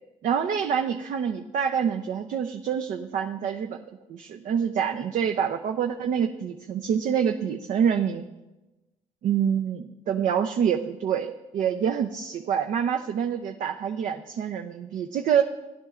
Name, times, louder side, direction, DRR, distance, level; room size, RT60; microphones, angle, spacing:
voice 1, 0.2-3.8 4.1-8.2 9.2-15.4, right 8 dB, 65° right, 5 dB, 0.6 m, -26 dB
16.5 x 10.5 x 2.4 m, 1.1 s
supercardioid pair, 75°, 14 cm